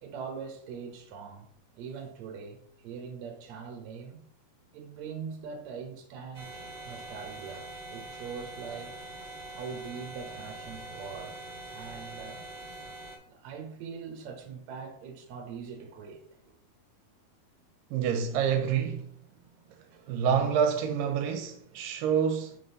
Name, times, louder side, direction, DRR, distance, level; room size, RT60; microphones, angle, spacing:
voice 1, 0.0-1.5 1.8-4.2 4.7-6.5 6.9-9.0 9.5-12.4 13.3-16.5 19.9-20.0, right 6 dB, 65° right, 2.2 m, -42 dB
sound 1, 6.3-13.2, right 2 dB, 40° right, 1.7 m, -43 dB
voice 2, 17.9-19.1 20.1-22.6, right 7 dB, 85° right, 2.3 m, -27 dB
6.0 x 3.9 x 5.3 m
omnidirectional pair, 3.9 m